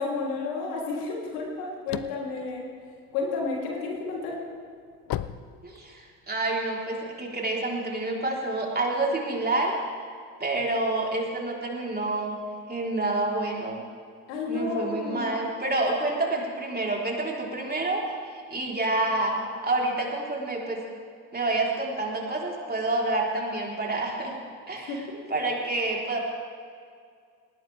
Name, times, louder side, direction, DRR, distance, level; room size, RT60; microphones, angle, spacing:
voice 1, 0.0-2.7 3.1-4.4 14.3-15.5 24.8-25.2, left 3 dB, 75° left, -2 dB, 3.4 m, -31 dB
sound 1, 1.4-3.6 4.1-6.3, left 12 dB, 45° left, 0.7 m, -35 dB
voice 2, 5.6-9.7 10.4-12.4 12.7-13.8 14.5-20.8 21.3-24.4 24.7-24.9 25.3-26.2, right 2 dB, 20° right, -2 dB, 4.0 m, -28 dB
19.5 x 17.0 x 3.5 m, 2.2 s
hypercardioid pair, 60°, 47 cm